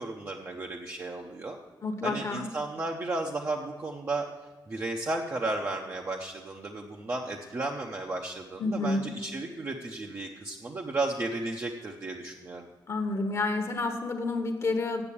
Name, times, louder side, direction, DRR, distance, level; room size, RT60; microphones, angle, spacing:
voice 1, 0.0-1.6 2.0-4.2 4.7-12.7, right 2 dB, 30° right, 0 dB, 0.8 m, -34 dB
voice 2, 1.8-2.5 8.6-9.1 12.9-15.0, left 3 dB, 40° left, 5 dB, 1.1 m, -29 dB
8.9 x 7.5 x 8.4 m, 1.3 s
wide cardioid pair, 135°, 8 cm